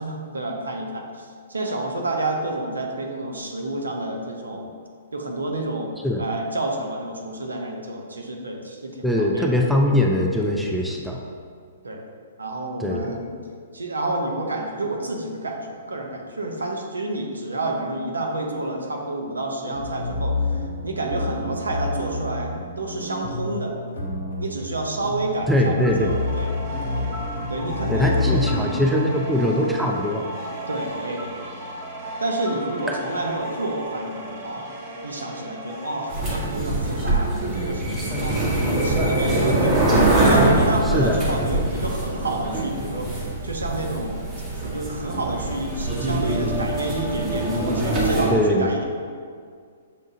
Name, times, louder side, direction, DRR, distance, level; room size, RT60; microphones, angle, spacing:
voice 1, 0.0-4.7 5.1-5.9 6.2-9.5 11.8-12.0 12.4-13.3 13.7-23.7 24.4-26.5 27.5-28.8 30.7-31.4 32.2-34.7 35.0-39.8 40.3-44.2 44.5-48.8, right 2 dB, 85° right, 2 dB, 0.6 m, -29 dB
voice 2, 9.0-11.2 12.8-13.1 25.5-26.1 27.9-30.2 40.9-41.2 48.3-48.7, left 1 dB, ahead, -1 dB, 0.4 m, -21 dB
sound 1, 19.7-32.5, left 2 dB, 80° left, 0.7 m, -30 dB
sound 2, 25.8-36.5, right 1 dB, 45° right, 0.8 m, -35 dB
sound 3, 36.1-48.3, right 1 dB, 25° right, 1.1 m, -23 dB
6.7 x 2.4 x 2.7 m, 2.1 s
hypercardioid pair, 125°, 0 cm